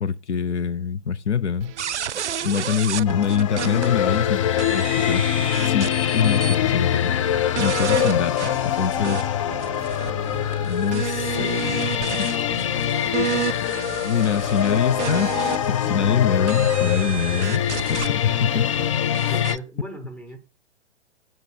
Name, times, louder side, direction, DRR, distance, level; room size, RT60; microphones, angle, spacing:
voice 1, 0.0-1.7 2.4-5.3 5.6-7.1 7.6-9.3 10.6-11.7 12.2-12.3 13.2-13.3 13.6-13.7 14.0-17.6 17.9-18.9 19.3-19.4, left 7 dB, 70° left, 0.8 m, -24 dB
sound 1, 1.6-19.1, right 9 dB, 25° right, 0.7 m, -41 dB
sound 2, 1.8-4.3 4.6-6.6 6.9-7.0 7.5-9.2 9.6-15.8 16.5-18.1 19.1-19.6, right 9 dB, 75° right, 0.5 m, -31 dB
sound 3, 3.1-19.6, left 10 dB, 30° left, 0.5 m, -24 dB
voice 2, 15.8-16.2 19.3-20.4, right 1 dB, 5° left, 1.3 m, -37 dB
9.0 x 5.2 x 5.9 m
figure-of-eight pair, 120°, 36 cm